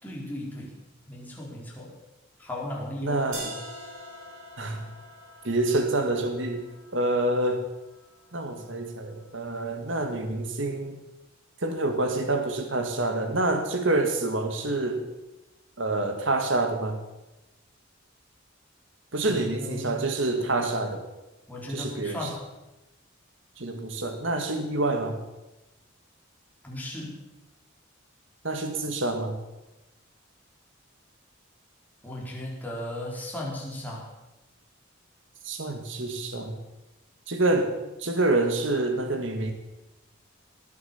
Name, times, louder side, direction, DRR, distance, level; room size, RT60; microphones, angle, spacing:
voice 1, 0.0-0.8 1.1-1.9 2.4-3.2 19.2-20.0 21.5-22.4 26.6-27.2 32.0-34.0, left 1 dB, 10° left, -4 dB, 4.5 m, -36 dB
voice 2, 3.0-3.5 4.6-4.8 5.4-6.6 6.9-7.6 8.3-11.0 11.6-15.1 15.8-17.0 19.1-21.0 21.7-22.3 23.6-25.2 28.4-29.4 35.4-36.6 37.3-37.7 38.0-39.5, right 2 dB, 65° right, 6 dB, 2.0 m, -27 dB
sound 1, 3.3-9.3, right 1 dB, 85° right, 7.6 m, -45 dB
19.5 x 9.6 x 7.2 m, 1.0 s
head